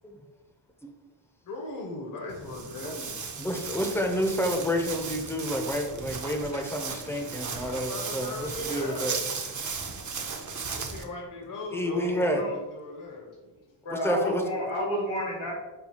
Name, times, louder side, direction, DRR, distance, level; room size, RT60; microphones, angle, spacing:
voice 1, 1.4-3.0 7.4-9.4 10.7-13.6, left 2 dB, 45° left, 0 dB, 0.7 m, -39 dB
Walk footsteps, 2.3-11.0, right 5 dB, 40° right, 0.6 m, -36 dB
voice 2, 2.8-3.1 3.4-9.2 11.7-12.5 13.9-14.4, equal, 5° left, 3 dB, 0.5 m, -29 dB
voice 3, 11.9-12.6 13.8-15.5, left 1 dB, 80° left, -3 dB, 1.3 m, -31 dB
5.5 x 2.3 x 2.8 m, 1.2 s
cardioid pair, 75°, 47 cm